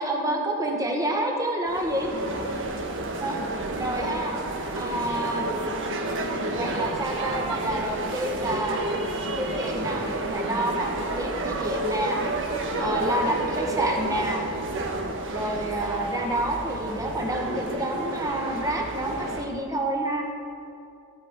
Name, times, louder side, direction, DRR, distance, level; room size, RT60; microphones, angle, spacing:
voice 1, 0.0-2.1 3.2-3.4 3.8-4.4 4.8-5.5 6.5-8.8 9.4-12.2 12.8-14.4 15.3-20.3, right 1 dB, 15° right, 0 dB, 1.7 m, -28 dB
sound 1, 1.7-19.4, right 2 dB, 60° right, 1.5 m, -30 dB
15.0 x 11.0 x 5.2 m, 2.6 s
head